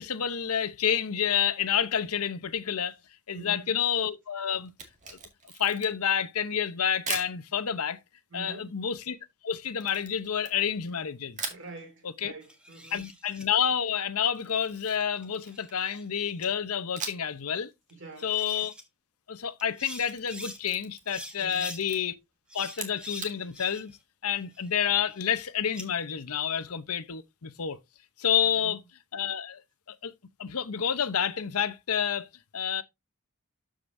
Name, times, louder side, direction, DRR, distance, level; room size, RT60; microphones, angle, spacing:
voice 1, 0.0-2.9 3.3-4.7 5.6-8.0 8.3-9.2 9.4-11.4 12.2-12.3 12.9-17.7 18.2-18.7 19.3-22.1 22.5-23.9 24.2-27.8 28.2-28.8 29.1-29.6 30.0-30.1 30.4-32.8, left 8 dB, 80° left, 0.8 m, -29 dB
voice 2, 3.3-3.7 8.3-8.7 11.5-13.1 17.9-18.3 21.4-21.8 28.4-28.8, right 4 dB, 55° right, 2.9 m, -45 dB
Camera, 4.7-6.1 7.1-7.4 9.8-11.0 11.4-11.7 14.3-15.9 17.0-17.4 17.7-17.8 19.8-21.2 21.5-22.0 22.7-23.4, right 5 dB, 35° right, 2.0 m, -39 dB
sound 1, 12.4-13.5 15.0-16.1 16.4-16.5 17.9-18.0 18.2-18.8 19.6-20.6 21.1-21.8 22.5-24.0 24.4-25.9, equal, 5° right, 1.4 m, -45 dB
13.5 x 5.2 x 2.6 m
head